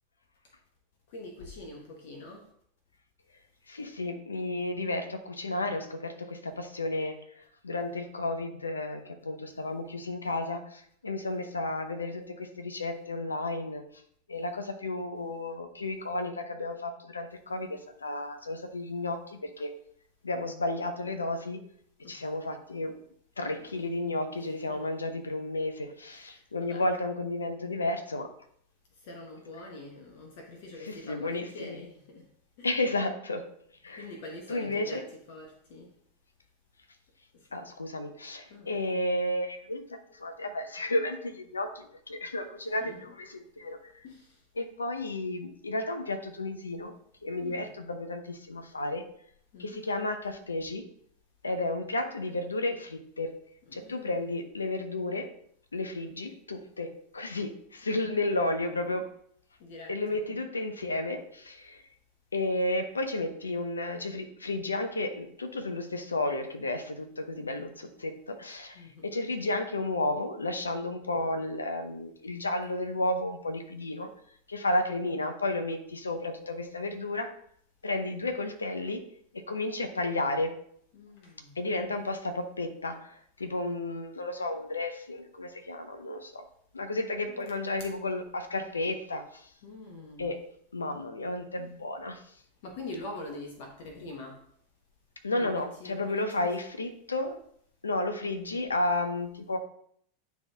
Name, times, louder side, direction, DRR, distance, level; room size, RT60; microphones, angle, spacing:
voice 1, 1.1-2.5 22.0-22.3 24.4-24.8 26.1-26.8 29.0-32.3 32.6-32.7 34.0-35.9 38.5-38.7 42.8-43.0 44.0-44.4 47.4-47.7 49.5-49.8 52.3-52.5 53.7-54.2 59.6-60.2 68.7-69.1 80.9-81.6 87.3-87.4 89.6-90.3 92.6-94.4 95.3-96.7, left 2 dB, 55° left, 1 dB, 1.1 m, -44 dB
voice 2, 3.7-7.2 7.6-13.8 14.3-19.7 20.2-21.6 22.1-23.0 23.4-28.3 30.8-31.8 32.6-33.5 33.8-34.1 34.5-35.0 37.5-43.9 44.6-46.9 47.2-49.0 49.6-50.9 51.4-53.3 53.7-55.3 55.7-59.1 59.9-61.8 62.3-74.1 74.5-77.3 77.8-79.0 79.3-80.5 81.6-86.4 86.7-89.5 90.2-90.4 90.7-92.2 95.2-97.4 97.8-99.6, left 2 dB, 80° left, 7 dB, 0.7 m, -32 dB
9.2 x 3.5 x 2.9 m, 0.65 s
figure-of-eight pair, 90°, 0 cm